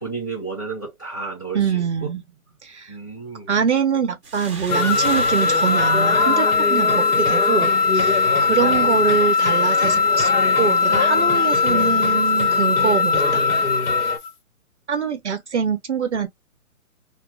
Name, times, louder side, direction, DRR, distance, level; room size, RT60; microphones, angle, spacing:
voice 1, 0.0-2.1 2.9-3.5 8.4-8.9, right 4 dB, 15° left, 0.7 m, -32 dB
voice 2, 1.5-2.2 2.6-3.0 3.5-10.3 10.6-13.5 14.9-16.3, right 6 dB, 50° right, 0.6 m, -24 dB
sound 1, 4.2-7.6, right 3 dB, 20° right, 0.8 m, -37 dB
sound 2, 4.7-14.3, left 5 dB, 85° left, 1.0 m, -19 dB
sound 3, 4.7-14.2, left 3 dB, 65° left, 1.1 m, -27 dB
2.2 x 2.0 x 3.3 m
hypercardioid pair, 170°, 44 cm